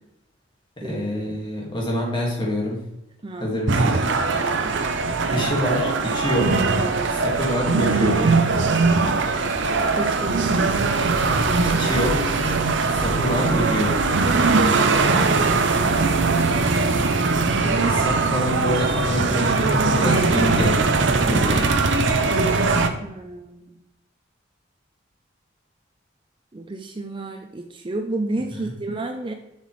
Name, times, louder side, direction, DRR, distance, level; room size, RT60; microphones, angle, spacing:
voice 1, 0.8-2.8 3.4-4.0 5.3-6.6 7.1-8.3 11.8-12.2 12.9-14.0 17.6-20.8 21.2-21.7 28.5-28.6, equal, 25° left, -2 dB, 1.9 m, -26 dB
voice 2, 3.2-3.6 4.3-4.7 9.8-10.8 11.4-12.1 23.0-23.8 26.5-29.3, right 2 dB, 25° right, 4 dB, 0.4 m, -32 dB
sound 1, 3.7-22.9, right 3 dB, 70° right, 0.6 m, -20 dB
7.2 x 5.8 x 3.1 m, 0.90 s
head